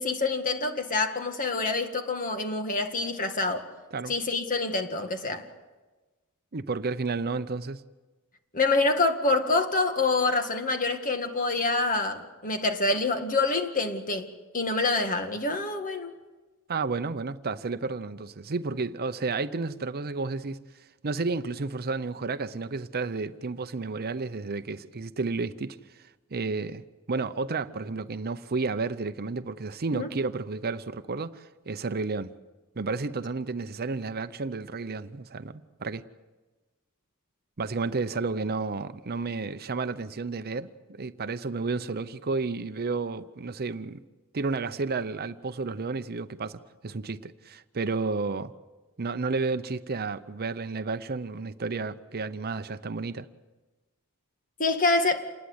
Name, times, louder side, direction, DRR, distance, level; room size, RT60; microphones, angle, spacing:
voice 1, 0.0-3.7 4.1-5.4 8.5-14.3 14.5-16.1 29.9-30.1 54.6-55.2, left 3 dB, 40° left, 1.9 m, -26 dB
voice 2, 6.5-7.8 16.7-20.6 21.0-25.8 26.3-26.8 27.1-32.3 32.8-36.0 37.6-44.0 44.3-48.5 49.0-53.3, right 4 dB, 45° right, 0.7 m, -31 dB
27.5 x 20.0 x 8.0 m
head